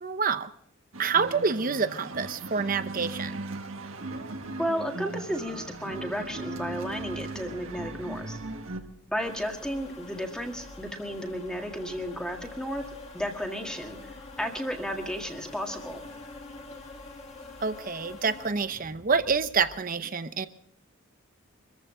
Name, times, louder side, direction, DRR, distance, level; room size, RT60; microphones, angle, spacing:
voice 1, 0.0-0.5 1.0-3.3 17.6-20.5, right 5 dB, 40° right, 12 dB, 0.8 m, -27 dB
sound 1, 0.9-8.8, right 2 dB, 70° right, 1.5 m, -38 dB
voice 2, 4.6-8.4 9.1-12.8 13.1-16.1, equal, 5° left, 2 dB, 1.8 m, -33 dB
sound 2, 5.3-19.8, equal, 75° left, 5.1 m, -54 dB
sound 3, 9.2-18.5, left 2 dB, 30° left, 2.0 m, -45 dB
24.5 x 14.5 x 3.8 m, 0.67 s
head